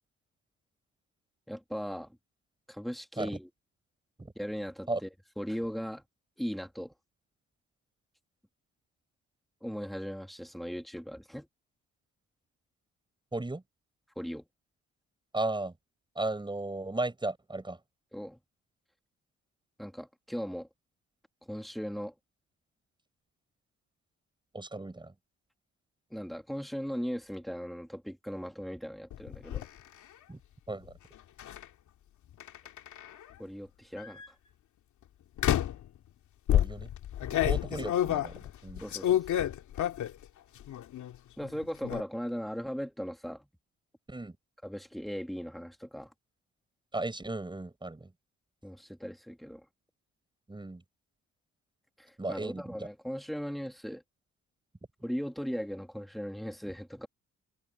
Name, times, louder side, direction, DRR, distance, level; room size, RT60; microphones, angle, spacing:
voice 1, 1.5-2.2 2.7-3.5 4.4-5.1 5.4-6.0 6.4-6.9 9.6-11.5 14.2-14.4 18.1-18.4 19.8-20.7 21.5-22.1 26.1-29.6 33.4-34.2 38.8-39.1 41.4-43.5 44.6-46.1 48.6-49.6 52.0-54.0 55.0-57.1, equal, ahead, 2.9 m, -38 dB
voice 2, 13.3-13.6 15.3-15.7 16.1-17.8 24.5-25.1 30.3-30.4 30.7-30.9 36.5-36.9 37.4-38.8 44.1-44.4 46.9-48.1 50.5-50.8 52.2-52.9, right 2 dB, 15° right, 8.0 m, -35 dB
sound 1, 29.1-29.7 31.4-31.6 32.4-33.2 34.0-34.3 35.4-35.9 36.5-40.2 40.6-41.2 41.4-42.0, left 11 dB, 75° left, 2.6 m, -29 dB
cardioid pair, 90°, 30 cm